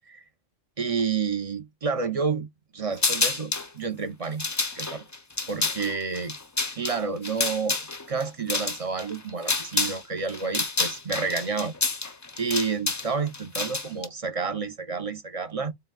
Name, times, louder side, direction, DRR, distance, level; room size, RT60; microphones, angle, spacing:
voice 1, 0.8-4.4 4.7-5.1 5.5-6.4 6.8-11.7 12.4-15.7, right 5 dB, 40° right, 0.6 m, -30 dB
sound 1, 3.0-3.7 4.2-10.0 10.3-14.1, left 3 dB, 25° left, 0.4 m, -28 dB
3.9 x 3.9 x 2.3 m
omnidirectional pair, 1.2 m